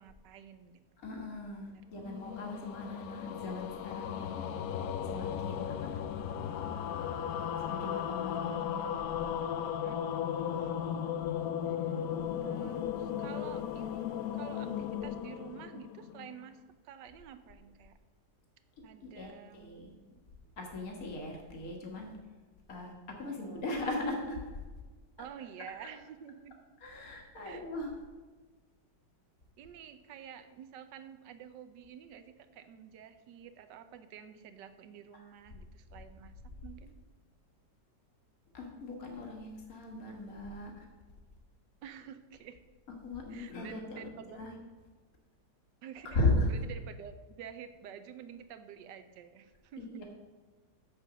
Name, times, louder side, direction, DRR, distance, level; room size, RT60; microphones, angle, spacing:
voice 1, 0.0-0.8 1.7-1.9 5.6-6.0 9.8-10.7 11.7-12.0 12.4-16.6 16.8-18.0 18.8-20.6 23.2-23.6 25.2-26.6 27.4-27.7 29.6-36.3 36.6-36.9 41.8-42.6 43.3-44.5 45.8-50.0, right 8 dB, 80° right, 10 dB, 1.3 m, -50 dB
voice 2, 1.0-4.5 5.0-6.0 7.7-8.9 19.0-19.9 20.6-22.1 22.7-24.6 26.8-27.9 35.1-35.2 38.5-40.9 43.0-44.0 44.4-44.6 46.1-46.5 49.8-50.0, left 2 dB, 55° left, 1 dB, 1.9 m, -37 dB
sound 1, 2.0-16.4, left 9 dB, 70° left, 0.9 m, -36 dB
7.6 x 6.7 x 6.1 m, 1.3 s
omnidirectional pair, 1.9 m